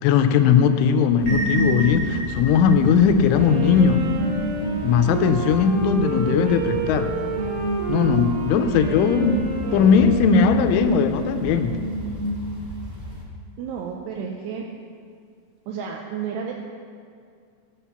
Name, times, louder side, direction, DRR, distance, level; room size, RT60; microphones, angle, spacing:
voice 1, 0.0-4.1 4.8-7.2 7.9-9.4 9.7-11.8, left 6 dB, 80° left, 8 dB, 3.0 m, -18 dB
sound 1, 1.2-12.9, right 1 dB, 50° left, 0.7 m, -30 dB
sound 2, 1.2-13.2, left 1 dB, 25° right, 1.3 m, -36 dB
Wind instrument woodwind instrument, 3.3-11.0, right 4 dB, 60° right, 3.6 m, -30 dB
voice 2, 13.6-14.7 15.7-16.5, right 7 dB, 80° right, 0 dB, 2.5 m, -31 dB
18.5 x 6.4 x 5.8 m, 2.2 s
omnidirectional pair, 5.8 m